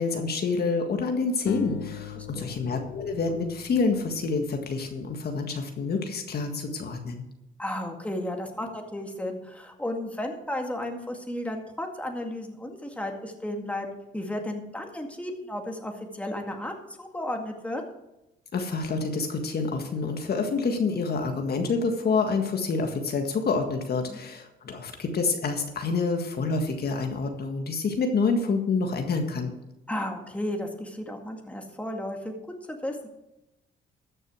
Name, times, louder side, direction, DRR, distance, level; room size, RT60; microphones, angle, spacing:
voice 1, 0.0-7.2 18.5-29.5, left 4 dB, 50° left, 4 dB, 1.7 m, -27 dB
sound 1, 1.5-4.7, left 9 dB, 90° left, 0.8 m, -38 dB
voice 2, 2.2-2.6 7.6-13.9 14.1-16.7 17.0-17.8 24.1-24.2 29.9-32.3 32.6-33.1, left 1 dB, 5° left, 2 dB, 2.1 m, -33 dB
13.5 x 6.7 x 6.2 m, 0.92 s
cardioid pair, 90°, 20 cm